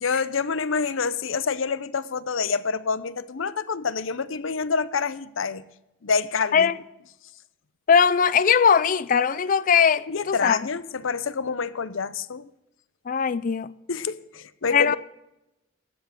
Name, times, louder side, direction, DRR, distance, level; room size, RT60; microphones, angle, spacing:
voice 1, 0.0-5.6 6.0-6.7 10.1-12.5 13.9-15.0, left 5 dB, 75° left, 0.7 m, -27 dB
voice 2, 7.9-10.6 13.1-13.7 14.7-15.0, left 6 dB, 40° left, 0.4 m, -20 dB
13.5 x 8.2 x 6.4 m
head